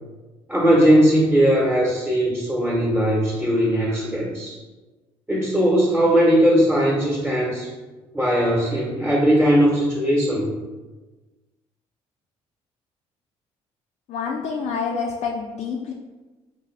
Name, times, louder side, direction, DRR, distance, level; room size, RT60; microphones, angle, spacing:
voice 1, 0.5-4.6 5.3-7.7 8.1-10.5, equal, 10° right, -5 dB, 1.0 m, -19 dB
voice 2, 14.1-15.9, left 5 dB, 60° left, 0 dB, 0.4 m, -27 dB
3.4 x 2.3 x 3.3 m, 1.2 s
supercardioid pair, 65°, 13 cm